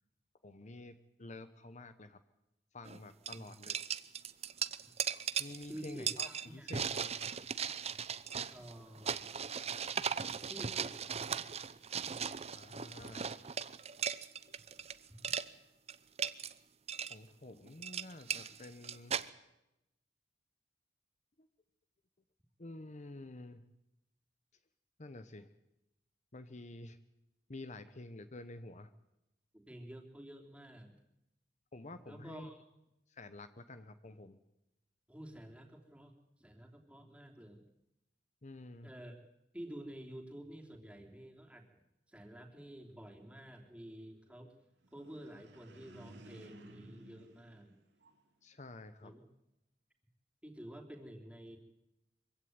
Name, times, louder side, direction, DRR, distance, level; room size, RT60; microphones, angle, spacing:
voice 1, 0.4-2.2 2.7-3.8 5.4-7.2 9.2-9.3 12.5-13.3 17.1-19.2 21.4-21.5 22.6-23.6 25.0-25.5 26.3-27.0 27.5-28.9 31.7-32.5 33.1-34.4 38.4-38.9 48.4-49.2, left 2 dB, 40° left, 11 dB, 1.0 m, -49 dB
sound 1, 2.9-3.0 3.3-14.9 15.2-15.5 15.9-16.5 16.9-17.1 17.7-19.3, right 7 dB, 35° right, 0.8 m, -38 dB
voice 2, 5.7-6.8 8.5-9.3 10.5-11.0 29.5-30.9 32.1-32.6 35.1-36.1 36.4-37.6 38.8-39.3 39.5-41.7 42.1-44.5 44.9-47.7 49.0-49.2 50.4-51.6, right 1 dB, 5° right, 1 dB, 3.3 m, -50 dB
sound 2, 44.8-48.4, right 1 dB, 70° right, 2.8 m, -57 dB
24.0 x 16.0 x 9.6 m, 0.89 s
head